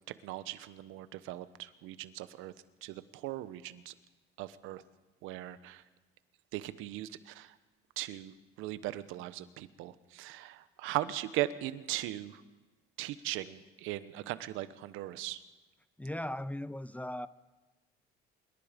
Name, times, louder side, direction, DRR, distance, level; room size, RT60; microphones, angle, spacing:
voice 1, 0.2-2.5 2.8-3.9 4.4-4.8 5.2-5.8 6.5-7.5 8.0-12.4 13.0-15.4, right 15 dB, 80° right, 14 dB, 1.1 m, -39 dB
voice 2, 16.0-17.3, left 1 dB, 5° left, 16 dB, 0.6 m, -38 dB
26.0 x 22.5 x 5.2 m, 1.2 s
cardioid pair, 90°, 20 cm